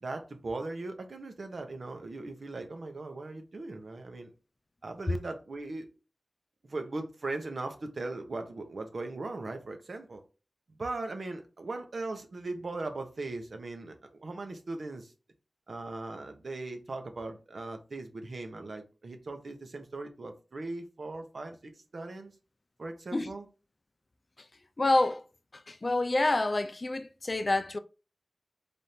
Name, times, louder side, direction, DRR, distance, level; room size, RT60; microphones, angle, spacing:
voice 1, 0.0-4.3 4.8-5.9 6.6-10.2 10.8-15.1 15.7-22.3 22.8-23.4, right 2 dB, 75° right, 0.8 m, -39 dB
voice 2, 24.8-25.2 25.5-27.8, left 2 dB, 45° left, 0.4 m, -27 dB
3.4 x 2.6 x 4.2 m
wide cardioid pair, 60°, 0 cm